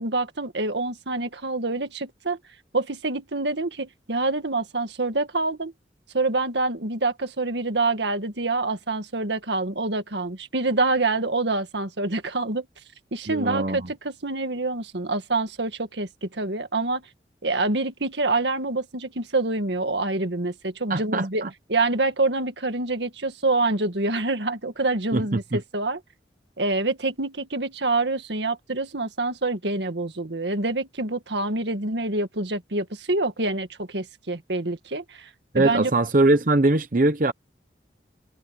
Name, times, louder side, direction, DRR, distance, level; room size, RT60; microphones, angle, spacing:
voice 1, 0.0-2.4 2.7-5.7 6.1-12.7 13.1-17.0 17.4-21.4 21.7-26.0 26.6-35.3 35.5-35.9, right 2 dB, 80° right, 1.8 m, -26 dB
voice 2, 13.3-13.9 20.9-21.5 25.1-25.6 35.5-37.3, right 2 dB, 50° right, 0.8 m, -22 dB
head